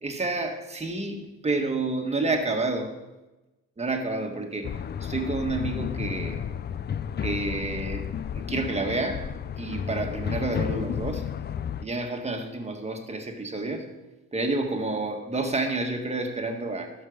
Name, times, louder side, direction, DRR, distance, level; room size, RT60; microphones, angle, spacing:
voice 1, 0.0-2.9 3.8-6.4 7.2-9.3 9.6-11.3 11.8-13.9 14.3-16.9, right 2 dB, 20° right, 4 dB, 1.7 m, -29 dB
sound 1, 4.6-11.8, left 8 dB, 35° left, 0.4 m, -32 dB
12.0 x 5.7 x 6.3 m, 1.1 s
cardioid pair, 90°, 30 cm